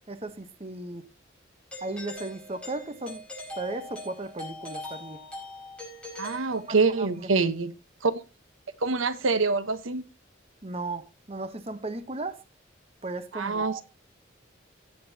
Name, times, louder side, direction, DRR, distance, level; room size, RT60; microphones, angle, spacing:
voice 1, 0.1-1.0 1.8-3.2 3.5-5.2 6.6-7.3 10.6-12.4 13.0-13.8, right 2 dB, 30° right, 1.0 m, -36 dB
Doorbell, 1.7-7.1, left 1 dB, 5° left, 5.3 m, -42 dB
voice 2, 6.2-7.7 8.0-8.2 8.8-10.1 13.3-13.8, right 4 dB, 90° right, 1.0 m, -25 dB
17.5 x 7.7 x 2.8 m
head